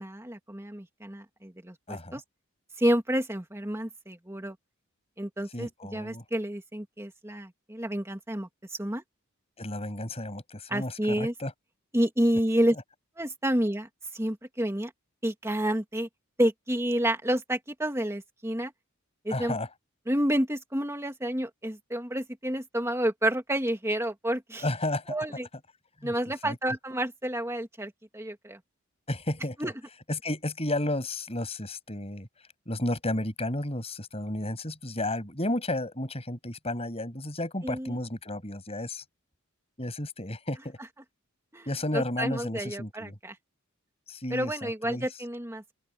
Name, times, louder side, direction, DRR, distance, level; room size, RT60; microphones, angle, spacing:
voice 1, 0.0-2.2 2.8-4.6 5.2-9.0 10.7-11.3 11.9-12.8 13.2-14.9 15.2-16.1 16.4-18.7 19.2-19.5 20.1-24.6 25.1-25.5 26.0-28.6 29.6-29.7 37.6-38.0 41.5-41.7 41.9-43.4 44.3-45.6, right 1 dB, 10° right, 2.4 m, -29 dB
voice 2, 1.9-2.2 5.5-6.2 9.6-11.5 19.3-19.7 24.6-25.1 26.0-26.2 26.4-26.6 29.1-29.7 30.1-32.3 32.7-39.0 39.8-40.8 41.7-43.2 44.1-45.1, left 1 dB, 30° left, 7.0 m, -32 dB
open air
head